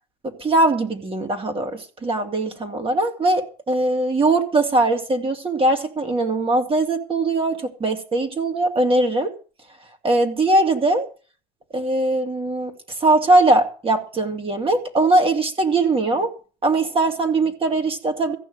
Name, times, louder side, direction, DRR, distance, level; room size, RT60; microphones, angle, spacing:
voice 1, 0.4-9.3 10.0-11.1 11.7-12.7 13.0-16.3 16.6-18.4, right 2 dB, 25° right, 2.8 m, -20 dB
15.0 x 6.2 x 8.9 m
hypercardioid pair, 75°, 21 cm